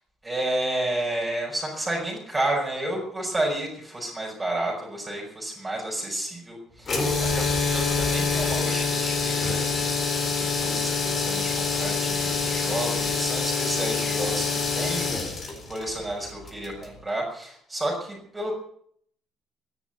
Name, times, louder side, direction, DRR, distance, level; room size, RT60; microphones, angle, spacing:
voice 1, 0.2-9.9 10.3-15.1 15.5-18.5, right 1 dB, 15° right, -2 dB, 6.0 m, -31 dB
sound 1, 6.8-17.0, left 4 dB, 30° left, 4.0 m, -26 dB
13.5 x 11.0 x 9.5 m, 0.65 s
cardioid pair, 155°, 0 cm